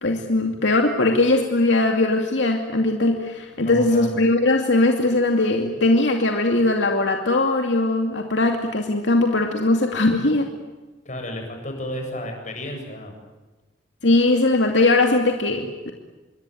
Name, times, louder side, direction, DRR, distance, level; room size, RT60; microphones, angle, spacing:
voice 1, 0.0-10.5 14.0-15.9, left 2 dB, 80° left, 3 dB, 2.6 m, -20 dB
voice 2, 3.6-4.2 11.0-13.1, left 1 dB, 45° left, 4 dB, 7.8 m, -32 dB
27.5 x 23.0 x 9.4 m, 1.2 s
head